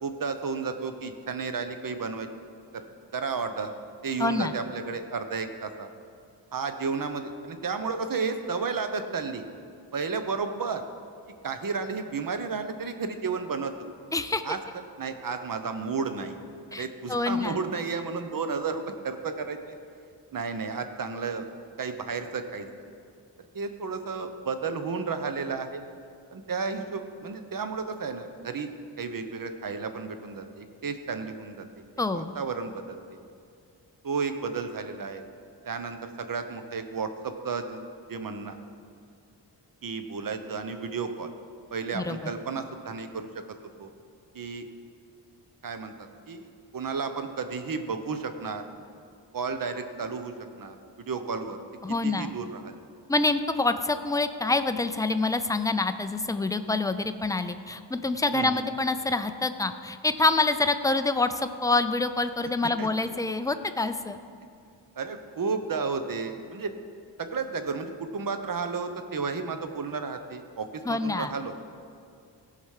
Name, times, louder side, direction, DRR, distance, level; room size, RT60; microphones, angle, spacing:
voice 1, 0.0-2.3 2.7-2.8 3.1-3.7 4.0-5.9 6.5-9.4 9.9-10.8 11.4-13.7 14.4-14.6 15.0-16.4 16.7-19.8 20.3-21.5 21.8-22.7 23.5-25.8 26.3-28.7 29.0-31.8 32.1-33.0 34.0-35.2 35.6-37.8 38.1-38.6 39.8-41.3 41.7-43.3 43.8-43.9 44.3-44.7 45.6-45.9 46.3-46.5 46.7-48.6 49.3-51.6 52.0-52.8 58.3-58.6 62.8-62.9 65.0-66.7 67.2-71.5, right 5 dB, 50° right, 8 dB, 0.8 m, -32 dB
voice 2, 4.2-4.5 14.1-14.4 16.7-16.8 17.1-17.6 32.0-32.3 41.9-42.3 51.8-52.3 53.1-64.2 70.8-71.3, left 3 dB, 10° left, 10 dB, 0.4 m, -26 dB
17.0 x 5.7 x 4.8 m, 2.4 s
wide cardioid pair, 105°, 44 cm